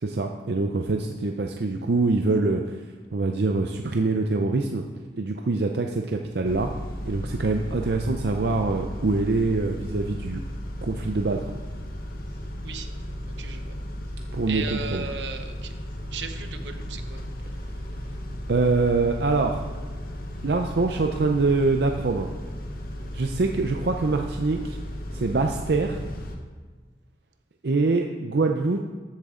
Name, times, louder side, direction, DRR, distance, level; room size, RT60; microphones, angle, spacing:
voice 1, 0.0-2.8 3.1-4.8 5.2-6.7 7.0-10.4 10.8-11.4 14.3-15.1 18.5-19.6 20.4-22.3 23.1-24.8 25.1-26.0 27.6-28.9, right 3 dB, 65° right, 3 dB, 0.6 m, -24 dB
Car / Idling / Accelerating revving vroom, 6.4-26.4, equal, 50° left, 1.1 m, -35 dB
voice 2, 13.4-13.7 14.5-15.7 16.1-17.2, right 5 dB, 80° right, 7 dB, 0.9 m, -36 dB
13.5 x 7.6 x 3.8 m, 1.4 s
head